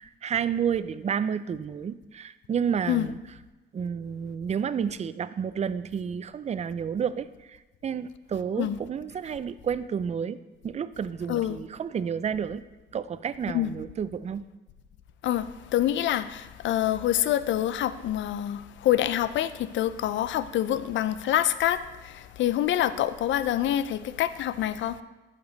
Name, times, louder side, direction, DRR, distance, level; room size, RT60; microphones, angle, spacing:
voice 1, 0.0-3.2 3.7-7.6 7.8-10.4 10.6-12.6 12.9-14.5, right 7 dB, 35° right, 0.4 m, -30 dB
voice 2, 11.3-11.6 13.5-13.7 15.2-15.5 15.7-25.0, left 12 dB, 70° left, 0.5 m, -26 dB
12.5 x 5.1 x 4.0 m
cardioid pair, 90°, 20 cm